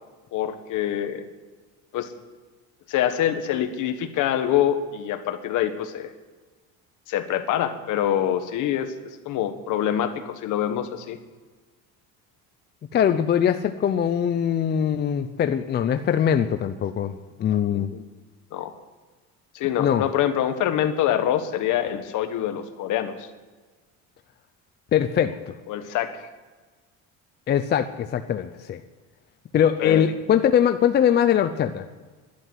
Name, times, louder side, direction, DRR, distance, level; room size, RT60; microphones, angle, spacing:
voice 1, 0.3-1.2 1.9-2.1 2.9-6.1 7.1-8.9 9.2-11.2 17.7-18.0 18.5-18.7 19.5-23.3 25.7-26.1 29.8-30.0, left 10 dB, 60° left, 9 dB, 1.6 m, -25 dB
voice 2, 12.9-17.9 19.8-20.0 24.9-25.5 27.5-28.8 29.5-31.8, left 9 dB, 30° left, 9 dB, 0.6 m, -22 dB
12.0 x 11.5 x 9.5 m, 1.3 s
cardioid pair, 150°, 34 cm